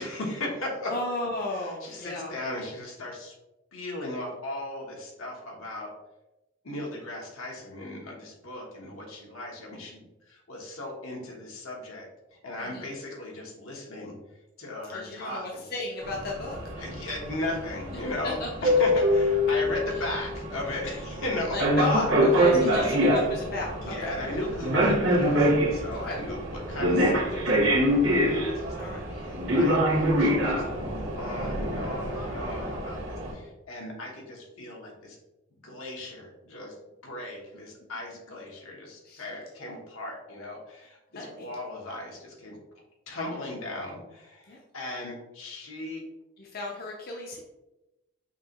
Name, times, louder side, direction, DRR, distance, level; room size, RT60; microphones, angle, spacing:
voice 1, 0.0-0.9 1.5-3.3 3.7-5.9 6.6-12.1 12.4-14.1 14.6-15.7 16.8-21.6 22.3-22.4 22.7-22.9 23.8-35.2 35.5-36.7 37.0-42.6 43.1-46.0, left 1 dB, 80° left, -1 dB, 1.2 m, -37 dB
voice 2, 0.8-2.3 12.6-12.8 14.9-16.6 18.2-18.5 21.5-24.1 25.9-26.2 28.7-29.1 33.3-33.4 39.0-39.3 41.1-41.5 44.5-44.6 46.4-47.4, left 2 dB, 45° left, -2 dB, 0.6 m, -34 dB
sound 1, 16.0-33.3, equal, 60° right, 1.2 m, -25 dB
5.8 x 2.9 x 3.0 m, 0.97 s
head